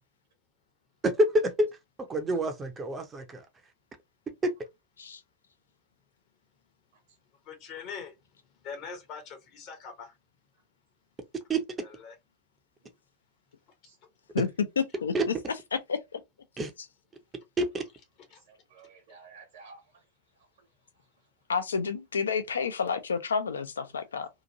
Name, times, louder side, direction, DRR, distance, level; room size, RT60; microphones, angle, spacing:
voice 1, 1.0-1.7 2.0-3.5 4.4-4.5 11.5-11.6 15.1-15.2 16.6-16.7 17.6-17.8, right 1 dB, 20° right, 0.6 m, -27 dB
voice 2, 7.4-8.2 8.6-10.2 11.8-12.1 18.3-18.4, left 5 dB, 40° left, 0.8 m, -42 dB
voice 3, 14.8-15.3 15.7-16.2 21.5-24.3, left 5 dB, 70° left, 0.5 m, -30 dB
voice 4, 18.3-20.1 20.3-21.3 23.9-24.0, right 4 dB, 60° right, 1.1 m, -55 dB
2.8 x 2.5 x 2.6 m
figure-of-eight pair, 90°, 0 cm